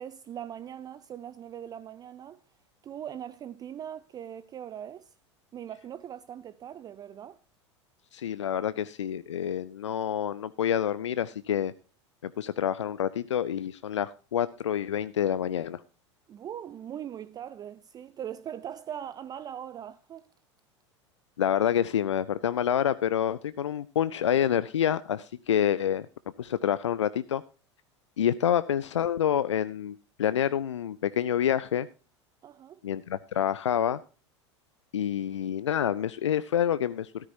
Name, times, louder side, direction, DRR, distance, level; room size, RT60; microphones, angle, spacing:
voice 1, 0.0-2.4 2.8-5.1 5.5-7.4 16.3-20.3 32.4-32.8, right 9 dB, 25° right, 0.5 m, -40 dB
voice 2, 8.1-11.7 12.2-15.8 21.4-26.1 26.4-27.4 28.2-31.9 32.8-34.0 34.9-37.3, left 9 dB, 75° left, 0.4 m, -27 dB
13.5 x 13.0 x 2.7 m
figure-of-eight pair, 80°, 15 cm